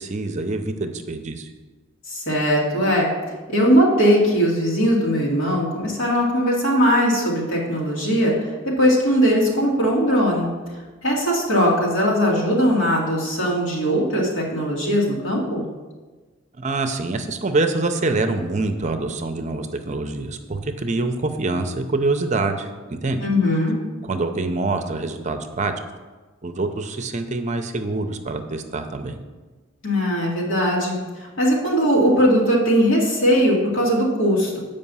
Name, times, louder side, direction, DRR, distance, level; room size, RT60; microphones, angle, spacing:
voice 1, 0.0-1.5 16.6-23.3 24.0-25.7 26.4-29.2, right 2 dB, 35° right, 7 dB, 0.6 m, -25 dB
voice 2, 2.1-3.1 3.5-10.5 11.0-15.6 23.2-23.8 29.8-34.6, equal, 85° left, -4 dB, 2.4 m, -19 dB
8.3 x 5.3 x 5.5 m, 1.3 s
head